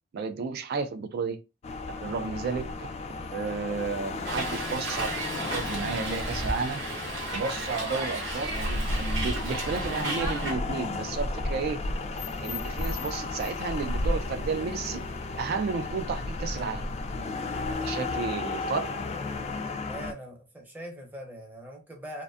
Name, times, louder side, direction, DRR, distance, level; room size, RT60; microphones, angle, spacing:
voice 1, 0.1-1.4 1.9-2.9 3.3-6.8 7.3-11.8 12.4-15.0 15.4-16.9 17.7-18.9, right 5 dB, 55° right, 0.3 m, -32 dB
sound 1, 1.6-20.1, left 2 dB, 35° left, 0.3 m, -33 dB
Hiss, 4.3-10.5, right 1 dB, 75° right, 0.8 m, -33 dB
voice 2, 19.9-22.2, equal, 10° right, 0.7 m, -42 dB
2.5 x 2.2 x 2.4 m
head